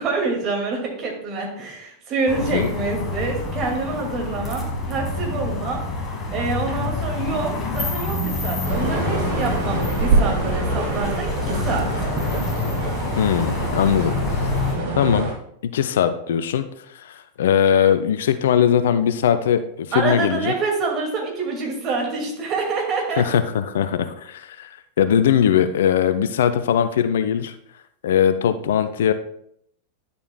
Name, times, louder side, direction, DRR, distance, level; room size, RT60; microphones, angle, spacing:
voice 1, 0.0-5.8 6.3-11.9 19.9-23.2, right 4 dB, 35° right, 1 dB, 2.1 m, -26 dB
sound 1, 2.3-14.8, left 2 dB, 20° left, 1.5 m, -27 dB
sound 2, 8.6-15.3, right 3 dB, 55° right, 1.8 m, -25 dB
voice 2, 13.2-14.1 15.0-15.3 15.6-16.7 16.9-19.6 19.9-20.5 23.2-24.7 25.0-27.5 28.0-29.1, left 9 dB, 60° left, 11 dB, 0.4 m, -20 dB
10.5 x 6.9 x 2.2 m, 0.70 s
figure-of-eight pair, 90°, 0 cm